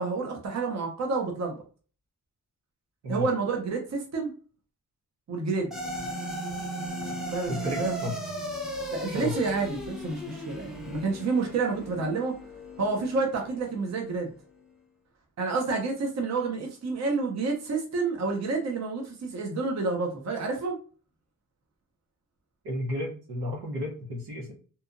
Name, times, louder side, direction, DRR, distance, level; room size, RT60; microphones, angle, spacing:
voice 1, 0.0-1.6 3.1-4.3 5.3-5.8 7.3-8.0 8.9-12.4 12.8-14.3 15.4-20.8, right 4 dB, 45° right, 1 dB, 0.7 m, -29 dB
sound 1, 5.7-14.2, equal, ahead, 0.6 m, -36 dB
voice 2, 7.5-8.2 9.1-9.4 22.6-24.5, left 1 dB, 85° right, -1 dB, 1.0 m, -33 dB
2.8 x 2.3 x 2.5 m, 0.38 s
wide cardioid pair, 140°, 38 cm